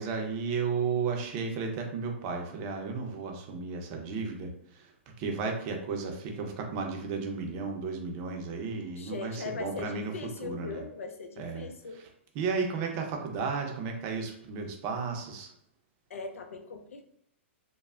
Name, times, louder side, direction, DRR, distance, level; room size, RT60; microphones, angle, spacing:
voice 1, 0.0-4.9 5.2-10.1 10.4-10.8 11.4-11.7 11.9-12.1 12.3-15.5, right 5 dB, 35° right, 3 dB, 0.5 m, -33 dB
voice 2, 9.0-12.0 16.1-17.0, left 4 dB, 85° left, 6 dB, 0.5 m, -40 dB
3.1 x 2.0 x 2.4 m, 0.75 s
hypercardioid pair, 140°, 7 cm